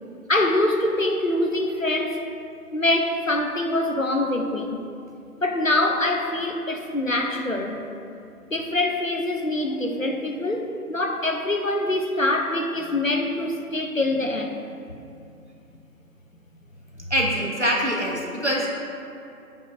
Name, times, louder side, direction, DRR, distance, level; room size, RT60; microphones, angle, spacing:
voice 1, 0.3-2.3 2.7-4.8 5.4-7.9 8.5-14.6 14.9-15.0, left 1 dB, 60° left, 4 dB, 0.5 m, -24 dB
voice 2, 17.1-18.7, equal, 50° right, -3 dB, 0.8 m, -24 dB
8.0 x 5.3 x 2.6 m, 2.6 s
figure-of-eight pair, 175°, 46 cm